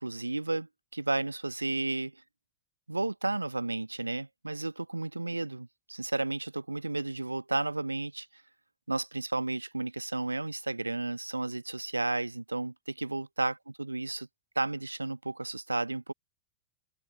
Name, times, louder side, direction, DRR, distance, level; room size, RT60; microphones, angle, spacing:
voice 1, 0.0-2.2 2.9-8.4 8.9-14.3 14.5-16.1, right 2 dB, 85° right, 1.1 m, -33 dB
figure-of-eight pair, 90°, 0 cm